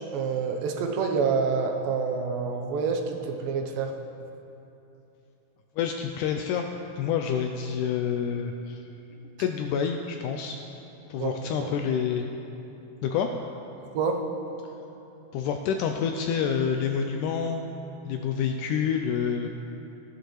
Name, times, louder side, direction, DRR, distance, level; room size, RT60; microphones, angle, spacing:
voice 1, 0.1-3.9 11.2-11.3 13.9-14.2, right 5 dB, 80° right, 3 dB, 2.6 m, -27 dB
voice 2, 5.8-6.7 7.0-8.8 9.4-10.6 11.1-12.2 13.0-13.3 15.3-17.6 18.1-19.5, left 7 dB, 85° left, 4 dB, 1.8 m, -28 dB
14.5 x 11.0 x 3.1 m, 3.0 s
omnidirectional pair, 4.0 m